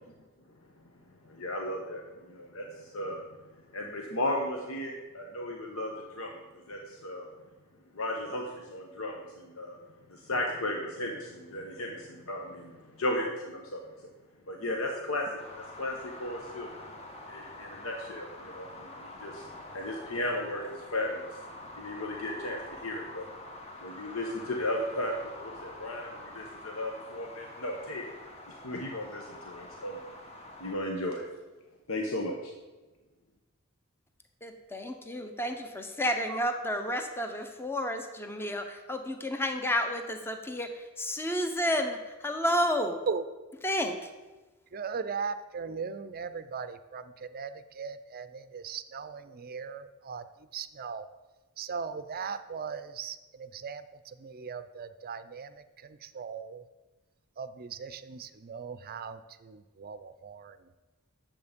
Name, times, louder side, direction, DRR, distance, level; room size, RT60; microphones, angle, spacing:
voice 1, 1.2-3.2 3.7-7.3 7.9-9.8 10.1-13.8 14.5-16.7 17.3-19.5 19.7-21.4 21.8-23.2 23.8-28.1 28.5-30.0 30.6-31.3 31.9-32.5, left 1 dB, 70° left, 1 dB, 1.1 m, -35 dB
sound 1, 15.4-30.8, left 1 dB, 30° left, 1.1 m, -46 dB
voice 2, 34.4-43.0 43.6-44.1, equal, 10° left, 5 dB, 0.8 m, -31 dB
voice 3, 44.7-51.1 51.6-56.6 57.4-60.7, right 5 dB, 45° right, 12 dB, 0.5 m, -38 dB
9.6 x 7.4 x 5.2 m, 1.2 s
head